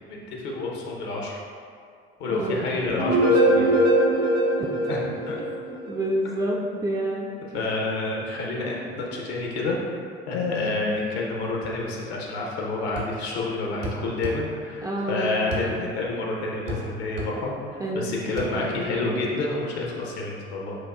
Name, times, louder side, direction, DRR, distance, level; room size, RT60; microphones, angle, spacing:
voice 1, 0.1-1.4 2.2-3.7 4.9-5.5 7.5-9.8 10.3-17.6 17.9-20.8, left 2 dB, 75° left, -2 dB, 0.8 m, -29 dB
voice 2, 2.3-3.0 3.3-3.5 4.6-5.1 5.7-7.3 8.6-8.8 10.8-11.0 14.8-15.7 17.8-19.2, right 1 dB, 10° right, -2 dB, 0.3 m, -30 dB
sound 1, 3.0-5.9, right 1 dB, 85° right, 1.5 m, -21 dB
sound 2, 13.0-13.2 13.8-14.4 15.5-15.7 16.7-16.9 17.2-17.3 18.4-18.5, left 1 dB, 60° right, 0.9 m, -31 dB
6.3 x 2.3 x 2.3 m, 2.3 s
figure-of-eight pair, 65°, 33 cm